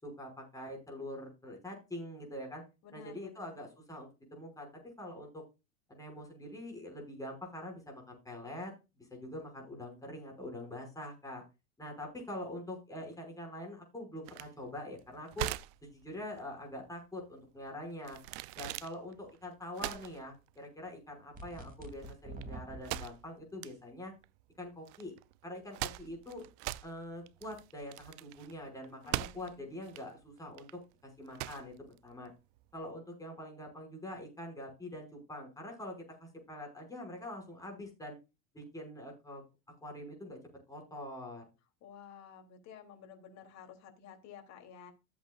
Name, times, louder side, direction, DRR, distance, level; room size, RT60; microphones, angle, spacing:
voice 1, 0.0-2.6 2.9-5.4 5.9-11.4 11.8-15.5 15.8-18.2 18.6-24.1 24.6-25.1 25.4-26.4 26.8-30.8 31.2-31.7 32.0-32.3 32.7-38.2 38.5-39.4 39.7-40.4 40.7-41.4, left 1 dB, 10° left, 1 dB, 5.9 m, -44 dB
voice 2, 2.8-3.6 29.0-29.6 41.8-44.9, left 8 dB, 40° left, 5 dB, 3.3 m, -53 dB
sound 1, 14.3-32.8, right 17 dB, 55° right, 0.6 m, -43 dB
sound 2, 21.3-23.0, right 2 dB, 20° right, 3.1 m, -46 dB
14.0 x 8.4 x 2.5 m, 0.27 s
supercardioid pair, 135°, 40 cm